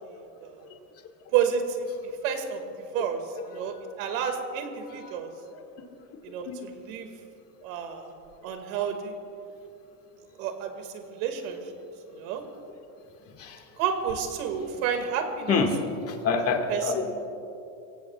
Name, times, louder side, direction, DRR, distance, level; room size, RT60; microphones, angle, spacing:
voice 1, 1.3-1.9 2.2-3.2 3.5-5.3 6.2-7.1 7.6-8.1 8.4-9.1 10.4-11.6 12.1-12.4 13.8-15.6 16.7-17.3, right 7 dB, 75° right, 5 dB, 2.2 m, -30 dB
voice 2, 15.5-15.8 16.1-17.0, left 4 dB, 35° left, 3 dB, 1.9 m, -26 dB
24.0 x 17.0 x 2.4 m, 2.8 s
supercardioid pair, 125°, 41 cm